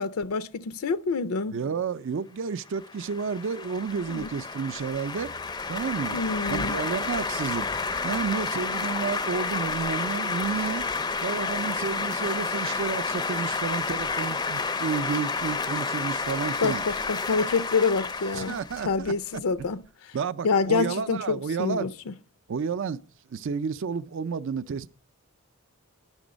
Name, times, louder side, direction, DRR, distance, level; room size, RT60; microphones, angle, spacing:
voice 1, 0.0-1.5 4.1-4.3 6.1-6.8 16.6-18.5 18.8-19.8 20.4-22.1, left 4 dB, 80° left, 0.5 m, -27 dB
voice 2, 1.5-5.3 5.7-6.2 6.5-7.7 8.0-10.9 11.2-16.8 18.3-19.1 20.1-21.9 22.5-23.0 23.3-24.9, right 5 dB, 60° right, 0.4 m, -31 dB
sound 1, 2.7-19.4, left 4 dB, 20° left, 0.4 m, -30 dB
10.5 x 6.1 x 5.0 m
head